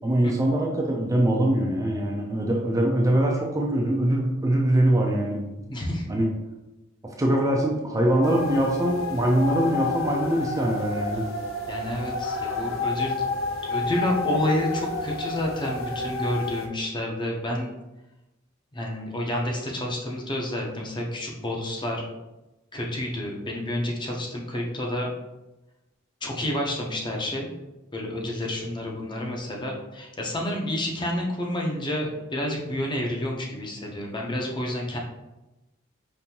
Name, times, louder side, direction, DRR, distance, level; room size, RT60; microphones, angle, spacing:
voice 1, 0.0-5.7 6.1-6.3 7.0-11.3, right 1 dB, 15° right, -1 dB, 0.4 m, -23 dB
voice 2, 5.7-6.1 11.7-13.2 13.6-17.7 18.7-22.1 22.7-25.1 26.2-27.5 27.9-35.0, left 1 dB, 25° left, -1 dB, 0.7 m, -29 dB
sound 1, 8.2-16.7, left 3 dB, 70° left, 0.6 m, -30 dB
5.2 x 2.6 x 2.9 m, 1.0 s
head